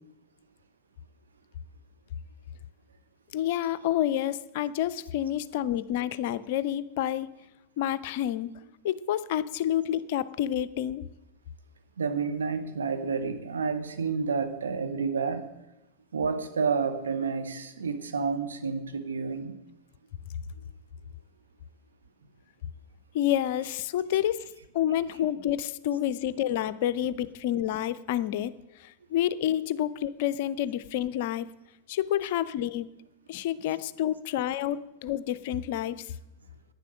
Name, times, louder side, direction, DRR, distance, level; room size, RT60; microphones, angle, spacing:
voice 1, 3.3-7.3 7.8-8.5 8.8-11.1 23.1-24.4 24.7-28.5 28.8-31.5 31.9-32.9 33.3-36.1, left 11 dB, 50° left, 17 dB, 0.5 m, -29 dB
voice 2, 12.0-15.5 16.1-19.6, right 5 dB, 70° right, 9 dB, 1.2 m, -30 dB
11.0 x 9.9 x 6.5 m, 0.94 s
figure-of-eight pair, 90°, 0 cm